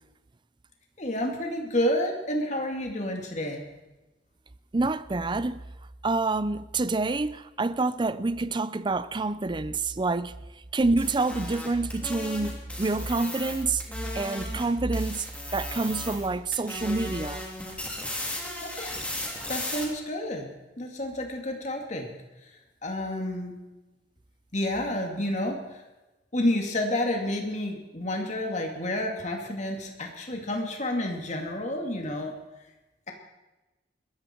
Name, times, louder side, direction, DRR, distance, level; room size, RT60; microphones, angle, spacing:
voice 1, 1.0-3.6 18.6-19.0 19.5-22.1 22.8-23.6 24.5-25.8 26.3-32.3, left 1 dB, 40° left, 2.4 m, -30 dB
voice 2, 4.7-5.6 6.0-10.3 10.7-13.8 14.1-15.3 15.5-17.4, right 3 dB, 25° right, 0.5 m, -27 dB
sound 1, 10.8-14.7 14.9-16.3 16.5-19.8, left 1 dB, 10° left, 3.2 m, -36 dB
21.5 x 14.0 x 4.5 m
head